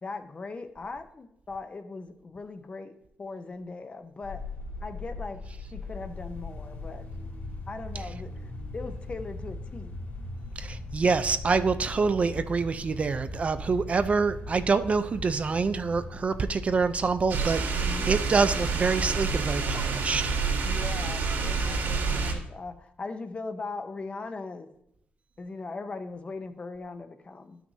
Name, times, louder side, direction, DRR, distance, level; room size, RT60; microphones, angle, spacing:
voice 1, 0.0-4.4 4.8-5.4 5.7-7.0 7.7-8.3 8.7-9.9 17.8-18.1 20.6-24.7 25.4-27.6, left 3 dB, 30° left, 8 dB, 0.7 m, -39 dB
sound 1, 4.2-22.4, left 2 dB, 50° left, 2.1 m, -40 dB
voice 2, 10.6-20.4, right 4 dB, 35° right, 11 dB, 0.4 m, -26 dB
sound 2, 17.3-22.3, right 5 dB, 80° right, 2.2 m, -28 dB
12.0 x 5.9 x 2.7 m, 0.75 s
cardioid pair, 110°, 4 cm